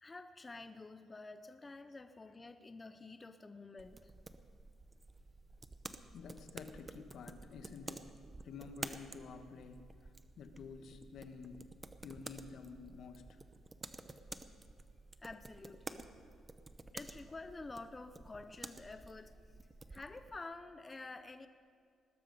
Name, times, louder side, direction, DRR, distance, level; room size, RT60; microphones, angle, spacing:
voice 1, 0.0-4.1 15.2-16.1 16.9-19.4 19.9-21.5, left 3 dB, 25° left, 10 dB, 0.6 m, -49 dB
sound 1, 3.8-20.4, right 2 dB, 25° right, 0.9 m, -51 dB
voice 2, 6.1-8.1 8.4-11.7 12.0-13.4, left 5 dB, 70° left, 8 dB, 1.3 m, -51 dB
19.0 x 13.0 x 5.4 m, 2.2 s
cardioid pair, 90°, 0 cm